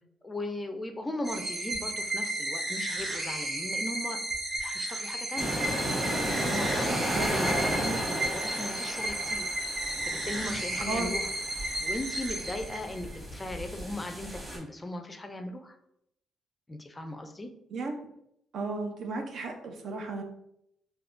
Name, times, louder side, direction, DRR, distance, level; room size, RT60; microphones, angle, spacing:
voice 1, 0.2-4.2 4.6-5.6 5.8-9.5 10.0-11.3 11.6-15.8 16.7-17.5, left 1 dB, 20° left, 6 dB, 0.4 m, -38 dB
sound 1, 1.2-13.2, right 1 dB, 45° right, 0.9 m, -33 dB
sound 2, 5.4-14.6, equal, 20° right, 1.4 m, -34 dB
voice 2, 10.8-11.1 17.7-18.0 18.5-20.2, right 3 dB, 65° right, 4 dB, 0.5 m, -34 dB
3.5 x 2.6 x 2.5 m, 0.77 s
cardioid pair, 90°, 0 cm